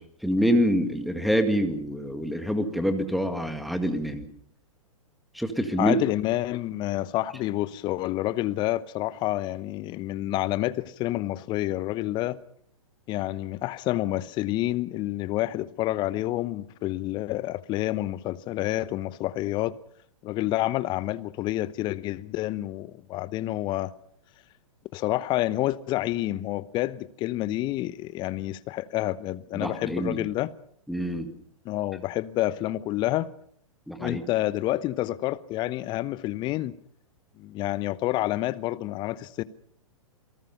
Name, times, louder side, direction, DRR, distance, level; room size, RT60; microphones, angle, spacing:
voice 1, 0.0-4.3 5.3-6.0 29.5-30.2 30.9-31.3 33.9-34.2, equal, ahead, 2.0 m, -26 dB
voice 2, 5.8-12.4 13.1-19.8 20.2-23.9 24.9-30.5 31.6-33.3 34.0-36.7 37.4-39.4, left 16 dB, 25° left, 0.9 m, -28 dB
27.5 x 18.5 x 5.6 m
figure-of-eight pair, 110°, 18 cm